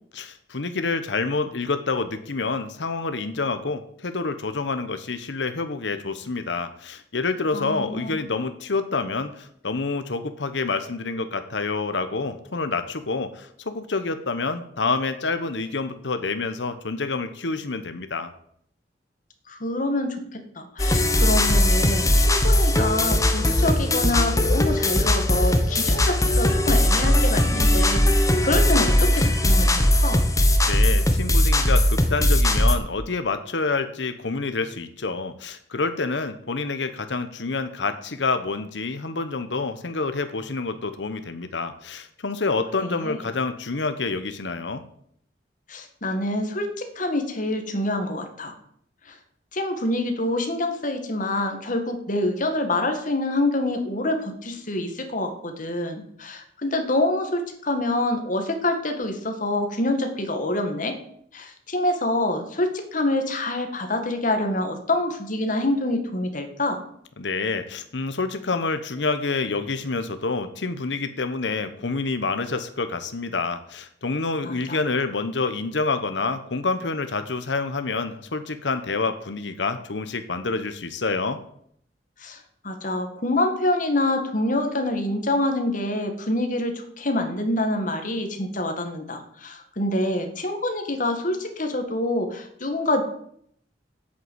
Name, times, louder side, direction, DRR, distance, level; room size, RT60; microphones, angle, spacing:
voice 1, 0.1-18.3 30.6-44.8 67.2-81.4, left 3 dB, 90° left, 10 dB, 1.0 m, -28 dB
voice 2, 7.5-8.2 19.5-30.2 42.8-43.2 45.7-48.5 49.1-49.2 49.5-61.0 61.3-66.8 74.4-74.8 82.2-93.0, left 1 dB, 50° left, 6 dB, 1.9 m, -26 dB
sound 1, 20.8-32.8, left 1 dB, 20° left, 1.2 m, -19 dB
8.4 x 7.9 x 8.0 m, 0.67 s
head